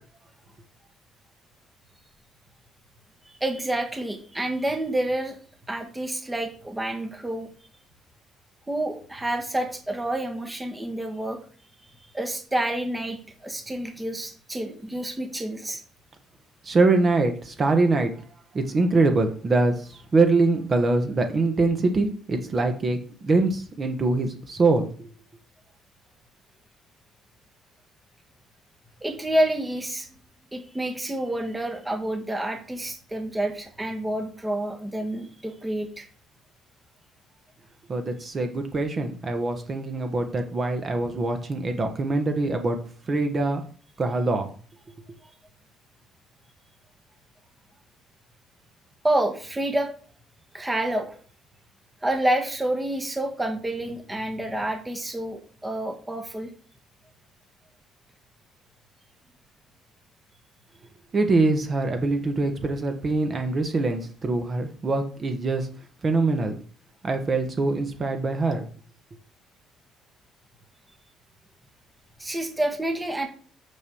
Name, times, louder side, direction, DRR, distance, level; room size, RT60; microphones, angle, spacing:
voice 1, 3.4-5.4 5.7-7.5 8.7-11.4 12.1-15.8 29.0-30.1 30.5-36.0 49.0-49.9 50.5-51.1 52.0-56.5 72.2-73.3, right 1 dB, 10° right, 4 dB, 1.3 m, -28 dB
voice 2, 16.6-18.1 18.5-25.1 37.9-42.8 43.1-43.6 44.0-44.5 61.1-65.7 66.0-66.6 67.0-68.7, right 3 dB, 25° right, 5 dB, 1.2 m, -23 dB
6.7 x 6.2 x 7.0 m, 0.43 s
cardioid pair, 165°, 0 cm